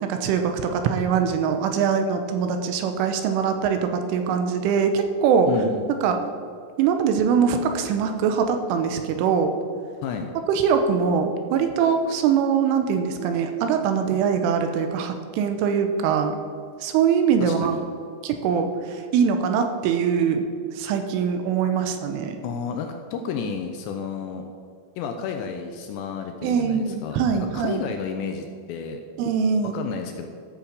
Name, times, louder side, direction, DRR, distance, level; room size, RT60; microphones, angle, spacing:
voice 1, 0.0-5.5 6.0-6.2 6.8-9.5 10.5-16.4 16.8-17.8 18.2-20.4 20.7-22.4 26.4-27.9 29.2-29.8, right 6 dB, 90° right, 6 dB, 3.4 m, -22 dB
voice 2, 5.5-5.9 10.0-10.3 17.4-17.8 22.4-24.5 25.0-29.0 29.6-30.3, left 6 dB, 80° left, 5 dB, 2.6 m, -31 dB
13.5 x 5.8 x 6.9 m, 2.3 s
omnidirectional pair, 5.7 m